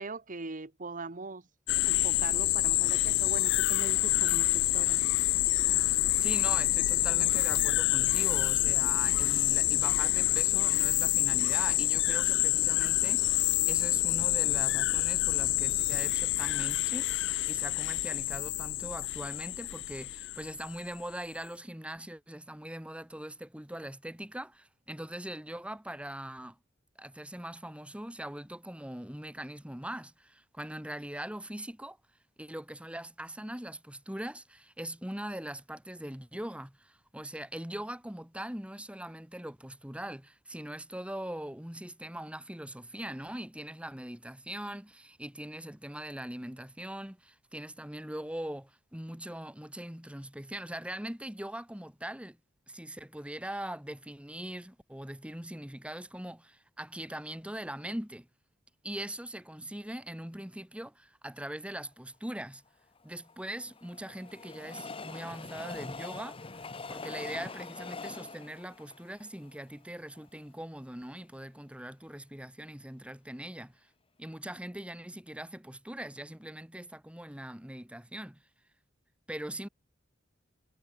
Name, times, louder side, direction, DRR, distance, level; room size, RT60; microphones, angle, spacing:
voice 1, 0.0-1.5 1.9-5.0, right 3 dB, 45° right, 1.4 m, -41 dB
sound 1, 1.7-20.8, left 17 dB, 65° left, 0.4 m, -27 dB
voice 2, 5.9-26.6 26.9-32.0 32.4-52.4 52.7-58.3 58.8-62.6 63.0-73.9 74.2-78.4 79.3-79.7, right 1 dB, 5° right, 1.7 m, -41 dB
Train, 63.0-70.2 70.8-70.9 71.1-71.2, left 3 dB, 30° left, 1.2 m, -43 dB
head